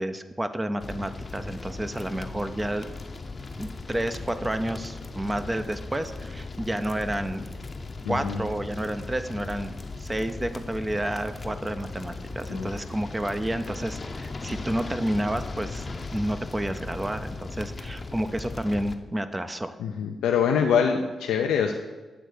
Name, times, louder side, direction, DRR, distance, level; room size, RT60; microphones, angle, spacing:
voice 1, 0.0-2.9 3.6-7.5 8.1-9.7 10.0-15.8 16.1-19.8, right 1 dB, 20° right, 9 dB, 0.5 m, -30 dB
sound 1, 0.8-19.0, left 3 dB, 40° left, 0.6 m, -37 dB
voice 2, 8.1-8.4 12.5-12.7 19.8-21.7, left 7 dB, 90° left, 3 dB, 0.4 m, -24 dB
8.0 x 3.3 x 6.5 m, 1.3 s
supercardioid pair, 55°, 0 cm